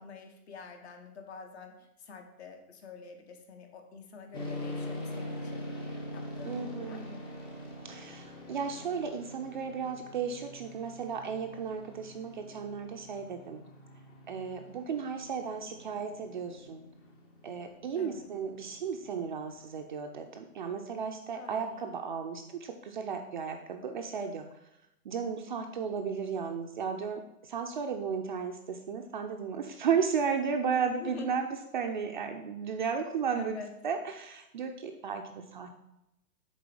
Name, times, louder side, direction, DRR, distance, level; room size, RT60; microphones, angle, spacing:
voice 1, 0.0-5.7 6.1-7.2 18.0-18.3 21.3-21.8 30.7-31.4 33.3-33.7, left 5 dB, 45° left, 4 dB, 1.4 m, -47 dB
sound 1, 4.3-19.8, left 1 dB, 10° left, 0.7 m, -44 dB
voice 2, 6.5-7.1 7.8-13.6 14.3-16.8 17.4-24.5 25.0-33.6 33.8-35.8, right 6 dB, 35° right, 4 dB, 0.5 m, -34 dB
7.0 x 4.2 x 6.2 m, 0.88 s
hypercardioid pair, 140°, 45 cm